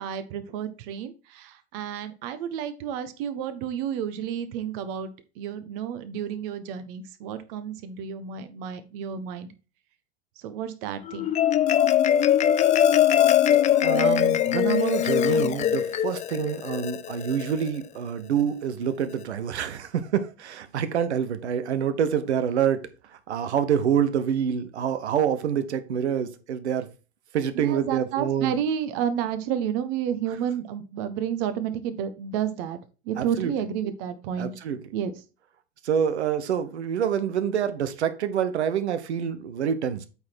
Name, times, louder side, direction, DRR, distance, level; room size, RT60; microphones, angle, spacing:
voice 1, 0.0-5.1 5.4-9.5 10.4-11.3 27.5-32.8 33.0-34.5 34.9-35.1, right 9 dB, 55° right, 11 dB, 1.3 m, -31 dB
Marimba xylophone, 11.1-17.7, left 10 dB, 20° left, 0.4 m, -21 dB
voice 2, 13.7-22.8 23.1-26.9 27.3-28.6 33.2-33.5 34.4-34.8 35.8-40.1, right 8 dB, 80° right, 11 dB, 1.1 m, -26 dB
8.5 x 4.2 x 4.4 m, 0.33 s
hypercardioid pair, 90°, 33 cm